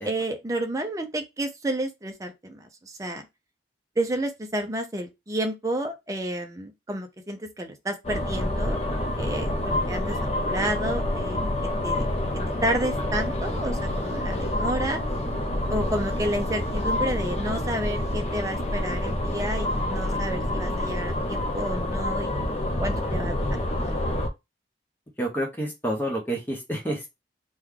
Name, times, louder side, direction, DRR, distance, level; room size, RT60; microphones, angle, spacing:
voice 1, 0.0-3.3 4.0-8.8 9.2-10.2 10.4-11.5 11.8-12.1 12.6-15.0 15.7-22.4 22.8-23.4 23.7-23.9, right 1 dB, 20° right, 0.5 m, -30 dB
sound 1, 8.0-24.3, left 1 dB, 35° left, 0.6 m, -27 dB
voice 2, 25.2-27.2, right 1 dB, 10° left, 0.9 m, -29 dB
3.0 x 2.3 x 3.6 m
head